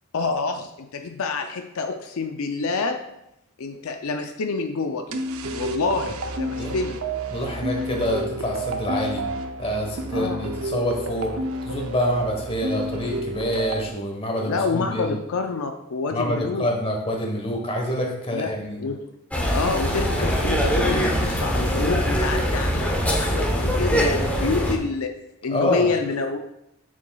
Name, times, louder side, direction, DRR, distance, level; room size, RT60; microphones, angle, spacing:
voice 1, 0.1-3.0 3.6-5.2 5.5-7.0 10.1-10.5 14.4-16.7 18.3-19.0 19.5-25.1 25.4-26.4, left 4 dB, 75° left, 5 dB, 0.5 m, -27 dB
sound 1, 5.1-13.9, right 2 dB, 75° right, 0.6 m, -30 dB
voice 2, 7.3-9.2 9.6-11.3 11.6-15.2 16.1-18.8 25.5-25.9, left 1 dB, 25° left, 1 dB, 1.2 m, -26 dB
sound 2, 19.3-24.7, equal, 5° left, 0.9 m, -22 dB
7.1 x 6.4 x 2.3 m, 0.83 s
head